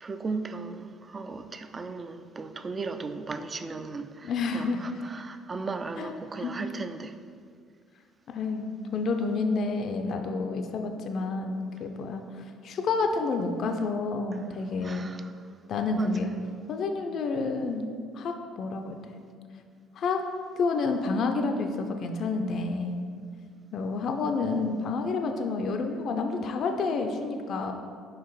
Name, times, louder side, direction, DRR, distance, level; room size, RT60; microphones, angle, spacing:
voice 1, 0.0-7.2 14.3-14.4 14.8-15.5 16.0-16.3, right 4 dB, 25° right, 0.3 m, -36 dB
voice 2, 4.2-4.8 6.0-6.1 6.4-6.5 8.3-15.1 15.7-16.3 16.7-17.9 18.1-19.0 20.0-20.2 20.6-23.1 23.7-27.7, left 4 dB, 50° left, 0.4 m, -29 dB
5.0 x 4.8 x 4.6 m
cardioid pair, 135°, 0 cm